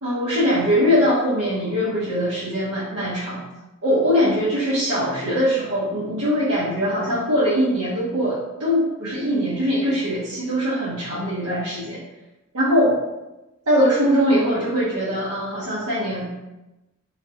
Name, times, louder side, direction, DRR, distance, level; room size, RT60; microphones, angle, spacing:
voice 1, 0.0-3.4 3.8-12.0 12.5-12.9 13.7-16.4, equal, 80° right, -10 dB, 1.0 m, -21 dB
3.7 x 3.6 x 2.9 m, 1.0 s
head